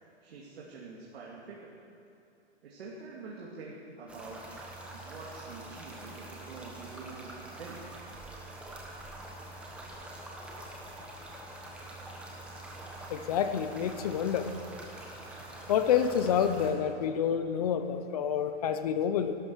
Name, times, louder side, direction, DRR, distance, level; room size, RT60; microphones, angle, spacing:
voice 1, 0.2-1.8 2.6-4.6 4.9-7.8, right 4 dB, 60° right, -4 dB, 2.6 m, -46 dB
sound 1, 4.1-16.7, right 2 dB, 5° right, 1.1 m, -45 dB
voice 2, 13.1-14.5 15.7-19.4, left 8 dB, 35° left, 9 dB, 0.8 m, -28 dB
17.0 x 11.5 x 6.3 m, 2.6 s
hypercardioid pair, 160°, 34 cm